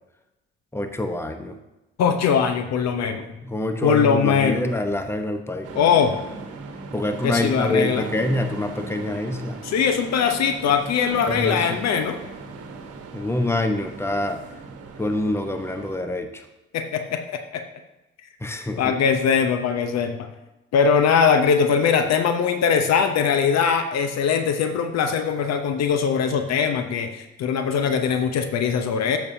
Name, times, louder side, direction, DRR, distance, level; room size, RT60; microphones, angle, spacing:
voice 1, 0.7-1.6 3.4-5.9 6.9-9.6 11.3-11.8 13.1-14.4 15.0-16.4 18.4-19.0, left 1 dB, 10° left, 6 dB, 1.0 m, -26 dB
voice 2, 2.0-3.3 3.8-4.6 5.7-6.1 7.2-8.0 9.6-12.2 16.7-17.6 18.8-20.3 20.7-29.2, left 6 dB, 60° left, 8 dB, 0.9 m, -21 dB
sound 1, 5.6-16.0, right 3 dB, 50° right, 1.3 m, -38 dB
13.5 x 6.4 x 2.8 m, 0.98 s
hypercardioid pair, 45°, 30 cm